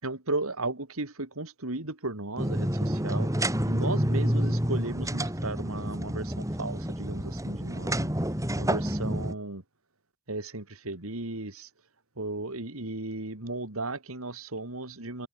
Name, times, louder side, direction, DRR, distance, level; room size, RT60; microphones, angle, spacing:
voice 1, 0.0-3.3 3.7-8.1 8.6-9.6 10.3-11.7 12.2-15.3, right 2 dB, 70° right, 3.0 m, -35 dB
sound 1, 2.4-9.3, equal, 15° right, 4.5 m, -29 dB
head